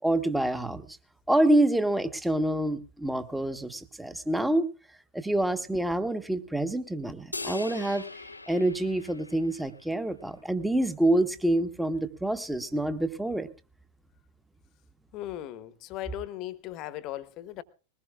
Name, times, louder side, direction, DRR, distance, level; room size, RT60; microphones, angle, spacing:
voice 1, 0.0-1.0 1.3-4.7 5.1-8.0 8.5-13.5, right 1 dB, 5° right, 1.3 m, -27 dB
sound 1, 7.3-9.9, left 3 dB, 80° left, 0.7 m, -40 dB
voice 2, 15.1-17.6, left 14 dB, 40° left, 1.1 m, -38 dB
21.5 x 19.0 x 2.4 m
figure-of-eight pair, 90°, 0 cm